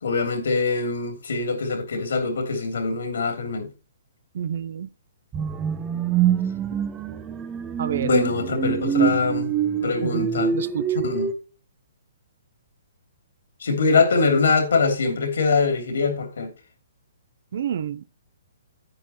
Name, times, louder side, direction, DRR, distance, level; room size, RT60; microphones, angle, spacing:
voice 1, 0.0-3.7 8.0-9.5 9.8-10.5 11.0-11.3 13.6-16.5, left 4 dB, 70° left, 2.9 m, -23 dB
voice 2, 4.3-4.9 7.8-8.1 10.0-10.9 17.5-18.0, right 9 dB, 60° right, 0.6 m, -29 dB
sound 1, 5.3-11.3, right 8 dB, 20° right, 1.0 m, -25 dB
10.5 x 8.9 x 3.0 m
hypercardioid pair, 135°, 0 cm